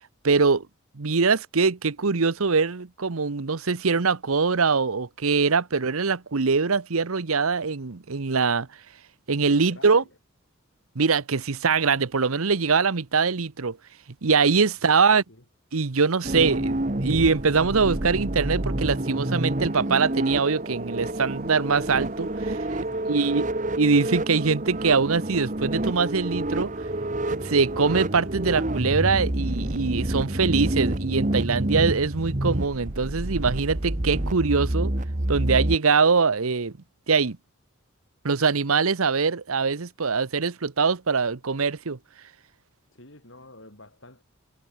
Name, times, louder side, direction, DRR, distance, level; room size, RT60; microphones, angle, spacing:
voice 1, 0.2-0.7 1.0-8.7 9.3-10.0 10.9-13.8 14.2-15.2 15.7-22.6 23.1-23.4 23.8-26.7 27.3-34.9 35.3-36.7 37.1-37.4 38.2-42.0, right 4 dB, 85° right, 0.9 m, -23 dB
voice 2, 9.5-10.1 15.1-15.4 22.8-23.4 42.9-44.2, left 2 dB, 65° left, 7.4 m, -48 dB
sound 1, 16.2-35.8, right 1 dB, 35° right, 1.3 m, -28 dB
head